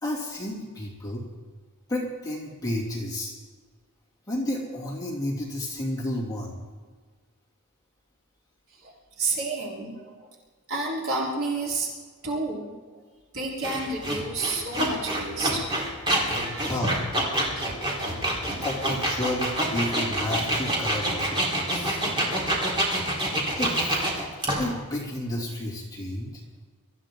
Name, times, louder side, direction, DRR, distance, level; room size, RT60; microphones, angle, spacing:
voice 1, 0.0-1.2 1.9-3.3 4.3-6.6 16.6-17.1 18.6-22.0 23.6-24.0 24.6-26.4, left 1 dB, 15° left, -3 dB, 2.8 m, -31 dB
voice 2, 9.2-10.1 10.7-11.9 12.2-13.0 13.3-15.6 16.2-16.7, right 3 dB, 65° right, -4 dB, 3.9 m, -30 dB
sound 1, 13.6-24.7, right 1 dB, 25° right, 4.0 m, -27 dB
23.5 x 15.0 x 3.8 m, 1.5 s
head